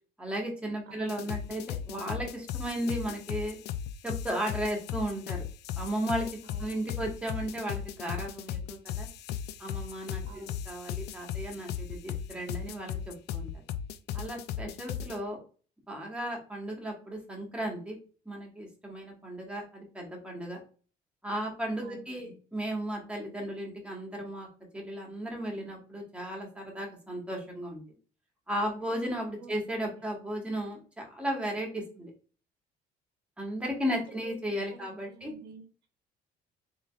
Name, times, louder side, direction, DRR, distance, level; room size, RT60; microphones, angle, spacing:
voice 1, 0.2-3.6 4.0-5.4 5.8-6.3 6.6-9.1 9.6-13.6 14.1-15.4 15.9-18.0 18.2-20.6 21.2-24.5 24.7-27.8 28.5-32.1 33.4-35.3, right 1 dB, 5° right, -1 dB, 1.6 m, -35 dB
voice 2, 0.9-1.4 6.4-7.0 10.3-10.6 21.8-22.4 29.4-29.6 29.8-29.9 33.9-35.9, right 4 dB, 80° right, 4 dB, 1.0 m, -51 dB
sound 1, 1.1-15.2, left 9 dB, 75° left, 0.4 m, -37 dB
3.8 x 3.6 x 2.4 m, 0.38 s
cardioid pair, 110°, 17 cm